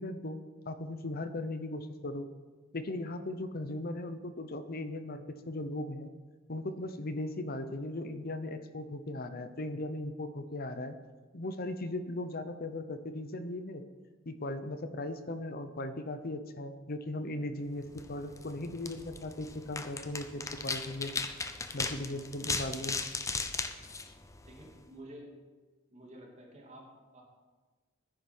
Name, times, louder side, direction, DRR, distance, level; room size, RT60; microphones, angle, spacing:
voice 1, 0.0-2.3 2.7-6.1 6.5-11.0 11.3-13.8 14.3-21.1 21.7-23.0 23.3-23.4, left 1 dB, 50° left, 10 dB, 0.9 m, -38 dB
sound 1, 17.9-24.8, left 3 dB, 15° left, 0.7 m, -38 dB
voice 2, 24.4-25.4 25.9-27.2, right 1 dB, 35° right, 0 dB, 2.5 m, -50 dB
10.0 x 10.0 x 6.2 m, 1.3 s
head